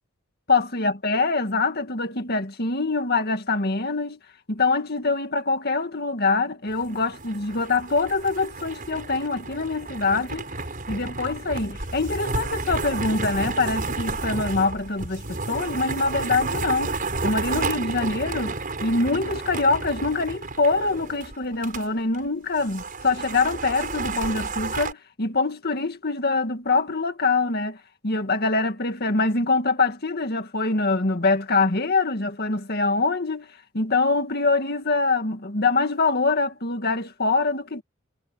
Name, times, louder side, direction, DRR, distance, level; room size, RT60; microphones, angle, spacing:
voice 1, 0.5-4.2 4.5-10.5 10.9-27.8 28.0-37.8, left 3 dB, 50° left, 2.1 m, -24 dB
sound 1, 6.7-21.9 22.1-22.2 22.6-24.9, right 3 dB, 45° right, 6.3 m, -31 dB
head